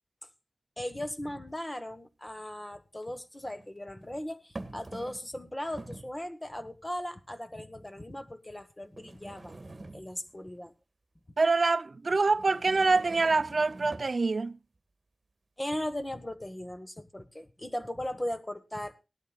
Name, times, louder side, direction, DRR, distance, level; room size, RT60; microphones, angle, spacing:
voice 1, 0.8-10.7 15.6-19.0, left 1 dB, 20° left, 1.3 m, -38 dB
sound 1, 1.6-1.7 3.0-3.7 4.6-5.4 5.6-6.2 7.0-7.1 7.9-8.0 9.0-10.4 12.3-14.2, right 2 dB, 40° right, 1.7 m, -46 dB
voice 2, 11.4-14.6, right 3 dB, 60° right, 0.6 m, -25 dB
18.5 x 12.5 x 2.4 m
wide cardioid pair, 85°, 0 cm